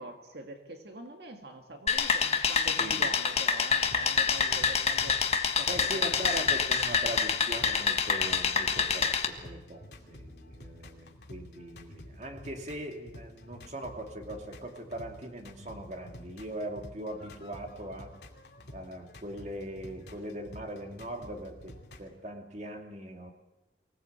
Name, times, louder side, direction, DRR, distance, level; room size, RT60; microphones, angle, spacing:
voice 1, 0.0-5.2 5.5-6.4, right 2 dB, 70° right, 4 dB, 2.0 m, -44 dB
sound 1, 1.9-9.2, left 6 dB, 35° left, 1.6 m, -27 dB
voice 2, 2.8-3.1 5.6-18.1 18.7-23.3, right 1 dB, 40° right, 3 dB, 2.6 m, -40 dB
sound 2, 3.6-22.1, left 1 dB, 75° left, 2.7 m, -50 dB
24.5 x 17.5 x 8.2 m, 1.0 s
head